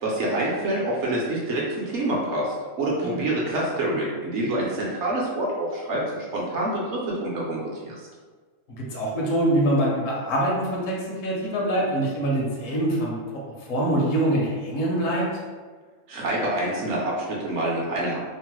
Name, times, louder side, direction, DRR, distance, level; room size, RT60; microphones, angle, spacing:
voice 1, 0.0-6.0 6.3-8.1 16.1-18.2, right 1 dB, 65° right, -4 dB, 0.9 m, -26 dB
voice 2, 8.7-13.2 13.7-15.2, right 1 dB, 70° left, -3 dB, 1.0 m, -24 dB
3.0 x 2.0 x 3.0 m, 1.4 s
omnidirectional pair, 1.4 m